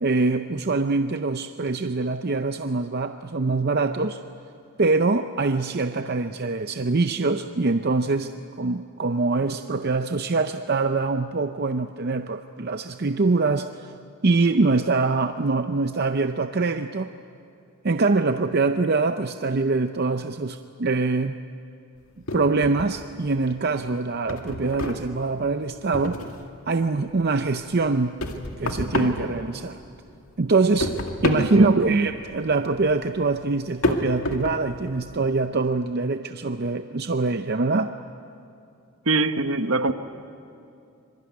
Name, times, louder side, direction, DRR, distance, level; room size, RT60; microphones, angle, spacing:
voice 1, 0.0-4.2 4.8-8.3 8.6-13.9 14.2-17.1 17.8-21.4 22.3-26.2 26.7-28.1 28.6-29.8 30.4-30.9 31.2-37.9, right 3 dB, 45° right, 0.6 m, -24 dB
sound 1, 22.3-23.3 23.7-26.6 26.9-30.0 30.3-35.2, left 1 dB, 75° left, 2.2 m, -30 dB
voice 2, 31.3-31.8 39.1-39.9, right 2 dB, 65° right, 1.2 m, -23 dB
25.5 x 23.0 x 9.5 m
head